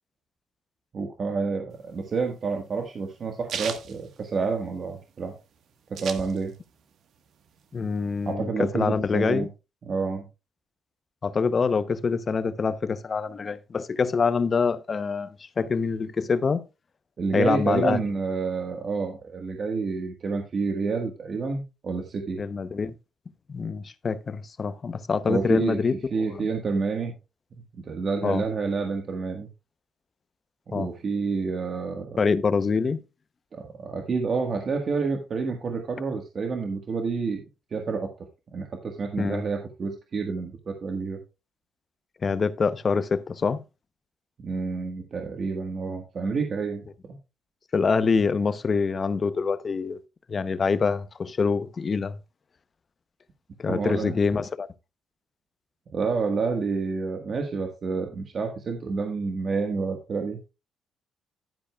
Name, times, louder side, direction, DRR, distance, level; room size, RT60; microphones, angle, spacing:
voice 1, 0.9-5.3 5.9-6.5 8.2-9.5 9.8-10.3 17.2-22.4 25.3-25.8 26.1-27.1 27.8-29.5 30.7-32.2 33.5-37.4 37.7-38.1 38.5-41.2 44.4-47.2 53.7-54.1 55.9-60.4, right 4 dB, 50° right, 1.5 m, -29 dB
sound 1, 1.8-4.9 5.2-5.3 5.5-6.8 7.2-8.3, right 7 dB, 70° right, 1.4 m, -37 dB
voice 2, 7.7-9.5 11.2-16.6 17.3-18.0 22.4-22.9 23.5-25.9 26.3-26.4 28.2-28.5 30.7-30.9 32.2-33.0 39.2-39.4 42.2-43.6 47.7-50.0 50.3-52.2 53.6-54.7, left 5 dB, 40° left, 0.7 m, -25 dB
11.5 x 9.9 x 2.3 m
cardioid pair, 90°, 0 cm